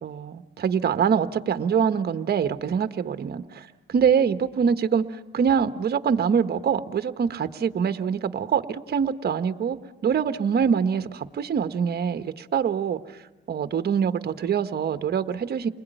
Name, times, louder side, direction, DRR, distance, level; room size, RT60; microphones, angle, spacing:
voice 1, 0.0-5.0 5.3-13.0 13.5-15.7, right 7 dB, 55° right, 10 dB, 1.4 m, -24 dB
29.5 x 21.0 x 9.3 m, 1.1 s
cardioid pair, 90°, 20 cm